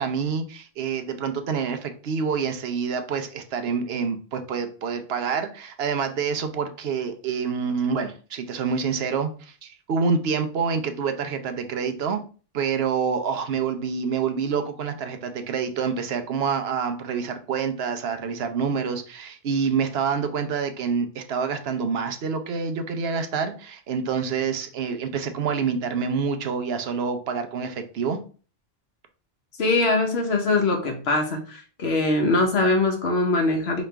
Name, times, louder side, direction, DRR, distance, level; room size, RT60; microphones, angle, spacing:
voice 1, 0.0-12.2 12.5-28.2, right 6 dB, 75° right, 7 dB, 0.9 m, -27 dB
voice 2, 29.6-33.8, left 2 dB, 80° left, 3 dB, 1.3 m, -22 dB
4.9 x 3.1 x 3.3 m, 0.38 s
omnidirectional pair, 1.1 m